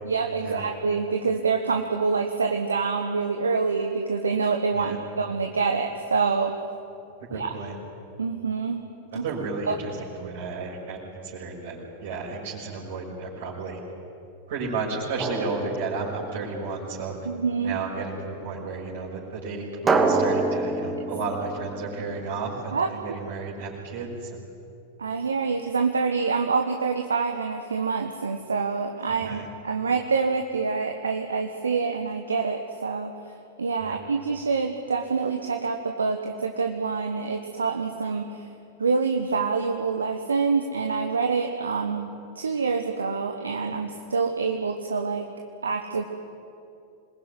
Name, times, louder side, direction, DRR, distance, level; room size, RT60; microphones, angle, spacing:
voice 1, 0.0-6.5 7.3-7.6 8.2-8.8 9.1-9.2 9.7-9.8 17.2-17.8 22.7-22.9 25.0-33.1 33.6-38.5 38.8-45.3 45.6-46.0, right 4 dB, 75° right, 5 dB, 1.4 m, -26 dB
voice 2, 7.3-7.8 9.2-13.8 14.5-17.2 17.6-24.4 29.2-29.4 33.8-34.0, right 4 dB, 55° right, -5 dB, 6.3 m, -33 dB
Drum, 15.2-16.7 19.9-22.6, right 3 dB, 20° right, 2.6 m, -27 dB
27.0 x 20.0 x 9.7 m, 2.6 s
figure-of-eight pair, 90°, 0 cm